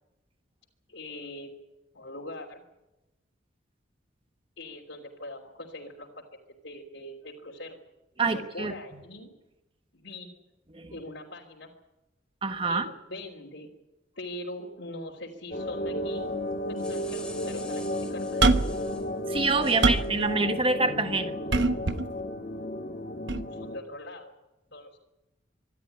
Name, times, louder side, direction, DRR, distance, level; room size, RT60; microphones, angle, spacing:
voice 1, 0.9-1.5 1.9-2.6 4.6-6.2 6.5-7.8 8.3-9.3 9.9-10.3 10.9-11.7 12.7-13.7 14.1-16.2 16.7-18.6 19.8-20.1 23.5-24.3 24.7-25.0, left 1 dB, 70° left, -2 dB, 3.1 m, -42 dB
voice 2, 8.2-8.7 10.7-10.9 12.4-12.9 19.3-21.6, right 3 dB, 25° right, 8 dB, 1.4 m, -26 dB
sound 1, 15.5-23.8, left 1 dB, 45° left, 1.5 m, -33 dB
sound 2, 16.5-19.1 19.6-20.3, left 2 dB, 5° left, 2.6 m, -47 dB
sound 3, 18.4-18.8 19.4-20.2 21.5-22.1 23.3-23.4, right 3 dB, 60° right, 1.0 m, -23 dB
25.0 x 12.5 x 10.0 m, 0.99 s
head